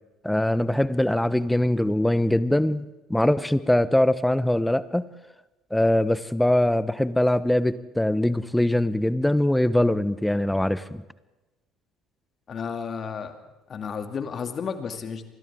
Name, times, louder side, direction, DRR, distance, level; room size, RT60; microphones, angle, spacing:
voice 1, 0.2-5.0 5.7-11.0, left 1 dB, 5° left, 16 dB, 0.9 m, -22 dB
voice 2, 12.5-13.3 13.7-15.2, left 6 dB, 40° left, 6 dB, 2.5 m, -32 dB
30.0 x 24.5 x 3.7 m, 1.1 s
figure-of-eight pair, 55°, 0 cm